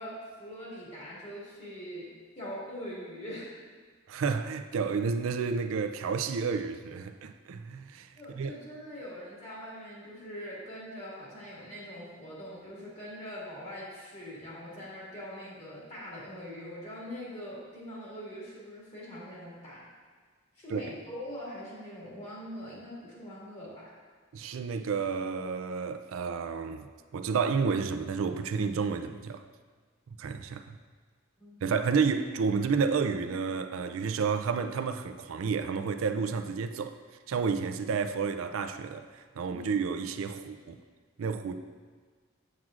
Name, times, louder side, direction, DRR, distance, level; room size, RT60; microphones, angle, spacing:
voice 1, 0.0-2.1 2.4-3.5 8.2-19.9 20.6-23.9 31.4-31.6 39.5-39.7, equal, 35° left, 2.0 m, -42 dB
voice 2, 4.1-8.1 8.4-8.5 20.7-20.8 24.3-26.9 27.1-29.4 30.2-30.8 31.6-37.0 37.3-40.8 41.2-41.6, right 5 dB, 90° right, 0.4 m, -30 dB
7.6 x 7.3 x 2.4 m
head